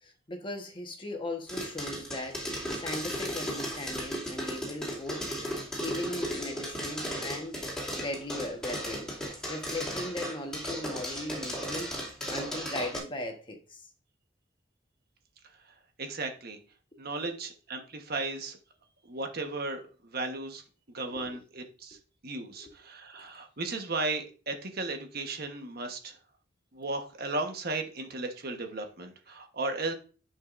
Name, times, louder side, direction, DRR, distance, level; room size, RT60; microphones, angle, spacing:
voice 1, 0.0-5.2 5.8-7.6 8.0-9.1 9.5-11.9 12.3-13.8 16.9-17.3 21.0-21.4 21.9-22.0 22.5-22.7, left 1 dB, 25° left, 3 dB, 1.3 m, -38 dB
sound 1, 1.5-13.0, equal, 5° left, 2.6 m, -35 dB
voice 2, 16.0-16.6 17.0-18.6 19.1-19.8 20.1-20.6 20.9-22.0 22.2-26.1 26.7-29.9, right 3 dB, 55° right, 5 dB, 1.2 m, -35 dB
10.0 x 5.6 x 2.6 m, 0.36 s
head